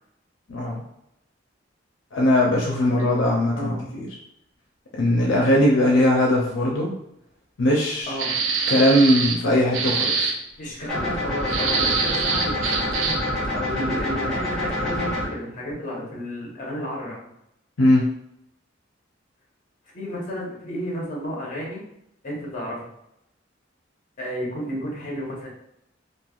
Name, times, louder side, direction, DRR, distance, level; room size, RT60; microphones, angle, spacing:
voice 1, 0.5-0.8 2.1-4.1 5.0-6.9 7.6-8.2 8.7-10.3 17.8-18.1, left 1 dB, 80° left, -2 dB, 0.5 m, -20 dB
voice 2, 3.5-3.8 8.1-8.4 10.6-17.3 19.9-21.8 22.2-22.9 24.2-25.5, equal, 45° left, -3 dB, 0.9 m, -32 dB
sound 1, 8.2-9.4 9.7-10.4 11.5-13.3, right 5 dB, 85° right, 0.4 m, -24 dB
sound 2, 10.9-15.3, left 1 dB, ahead, 1.1 m, -27 dB
3.2 x 2.4 x 2.3 m, 0.79 s
head